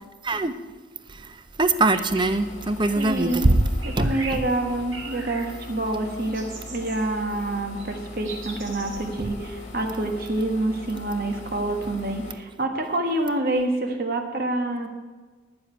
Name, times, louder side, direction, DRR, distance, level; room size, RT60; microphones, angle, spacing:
voice 1, 0.2-0.5 1.1-3.6 4.0-4.4 9.2-9.3, right 2 dB, 25° right, 11 dB, 0.5 m, -23 dB
sound 1, 1.8-2.4 2.8-3.4 3.8-4.4 4.9-5.5 6.3-7.0 7.8-7.9 8.2-9.0, right 3 dB, 85° right, 2.0 m, -39 dB
sound 2, 2.1-12.3, left 2 dB, 40° left, 1.7 m, -41 dB
voice 2, 2.9-3.5 3.8-14.9, right 2 dB, 50° right, 4 dB, 1.4 m, -27 dB
10.0 x 7.1 x 8.8 m, 1.4 s
head